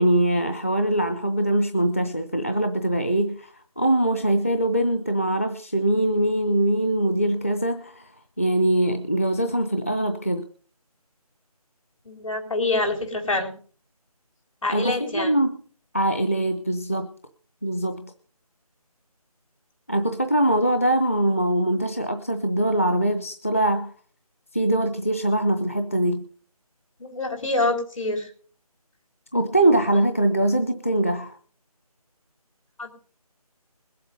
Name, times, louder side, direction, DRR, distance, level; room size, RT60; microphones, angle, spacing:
voice 1, 0.0-8.1 8.4-10.5 14.7-15.6 15.9-17.1 17.6-18.1 19.9-23.9 24.5-26.2 29.3-31.4, right 1 dB, 20° left, 7 dB, 0.6 m, -22 dB
voice 2, 12.0-13.5 14.6-15.3 27.0-28.3 32.8-32.9, left 2 dB, 55° left, 4 dB, 4.5 m, -26 dB
21.0 x 7.8 x 5.2 m, 0.43 s
figure-of-eight pair, 175°, 20 cm